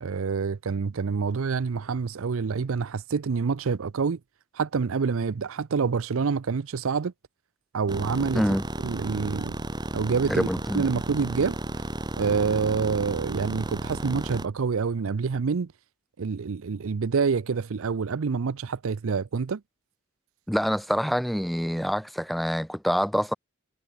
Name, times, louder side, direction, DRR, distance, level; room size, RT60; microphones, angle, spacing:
voice 1, 0.0-4.2 4.5-7.1 7.7-8.4 8.8-9.5 9.9-10.5 10.7-11.6 12.2-15.7 16.2-19.6, right 5 dB, 70° right, 0.5 m, -27 dB
sound 1, 7.9-14.5, right 1 dB, 20° right, 1.7 m, -33 dB
voice 2, 10.3-10.9 20.5-23.3, equal, ahead, 0.3 m, -26 dB
head